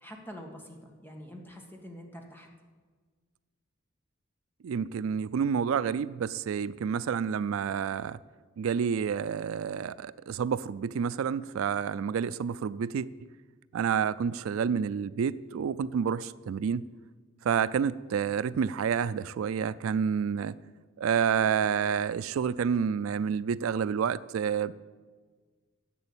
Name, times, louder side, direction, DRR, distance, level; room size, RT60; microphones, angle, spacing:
voice 1, 0.0-2.5, equal, 10° left, 1 dB, 1.7 m, -46 dB
voice 2, 4.6-8.2 8.6-13.1 13.7-16.8 17.4-20.5 21.0-24.7, right 7 dB, 80° right, 16 dB, 0.4 m, -29 dB
11.0 x 8.0 x 8.7 m, 1.5 s
head